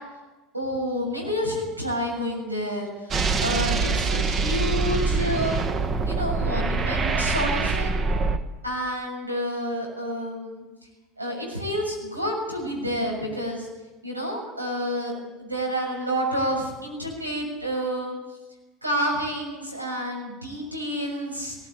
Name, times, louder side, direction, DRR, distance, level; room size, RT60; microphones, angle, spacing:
voice 1, 0.5-2.9 3.4-5.6 6.1-8.1 8.6-10.6 11.2-13.7 14.0-18.2 18.8-21.6, equal, 85° right, 0 dB, 7.0 m, -29 dB
sound 1, 3.1-8.4, right 4 dB, 30° right, 1.5 m, -24 dB
20.0 x 17.5 x 8.6 m, 1.1 s
figure-of-eight pair, 75°, 0 cm